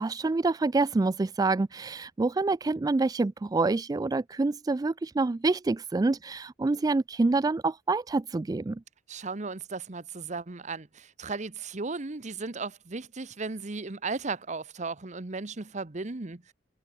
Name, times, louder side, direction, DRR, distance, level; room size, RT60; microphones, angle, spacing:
voice 1, 0.0-8.8, right 3 dB, 20° right, 0.3 m, -27 dB
voice 2, 9.1-16.5, right 3 dB, 45° right, 1.0 m, -36 dB
head